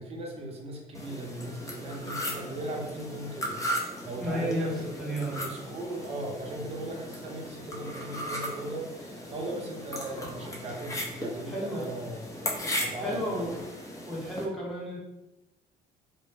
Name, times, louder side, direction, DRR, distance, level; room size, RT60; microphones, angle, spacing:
voice 1, 0.0-12.2 12.8-13.4, right 1 dB, 35° right, 0 dB, 0.6 m, -38 dB
sound 1, 0.9-14.4, equal, 20° left, 0.5 m, -37 dB
voice 2, 4.2-5.5 11.5-11.9 13.0-13.6 14.1-15.0, equal, ahead, -6 dB, 0.8 m, -32 dB
2.0 x 2.0 x 3.2 m, 1.0 s
cardioid pair, 110°, 17 cm